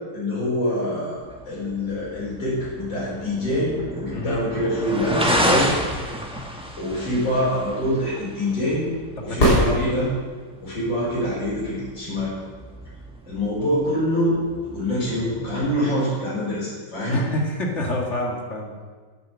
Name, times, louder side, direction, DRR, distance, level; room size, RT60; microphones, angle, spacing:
voice 1, 0.1-5.7 6.8-8.8 9.2-10.1 10.6-12.3 13.3-17.2, equal, 70° left, -8 dB, 5.8 m, -25 dB
sound 1, 1.2-15.8, equal, 5° right, 1.1 m, -31 dB
sound 2, 9.3-10.5 14.4-14.5, equal, 55° left, 4.0 m, -21 dB
voice 2, 9.4-9.9 15.8-15.9 17.1-18.8, left 1 dB, 35° left, 0 dB, 2.1 m, -28 dB
10.5 x 9.3 x 7.3 m, 1.5 s
omnidirectional pair, 2.1 m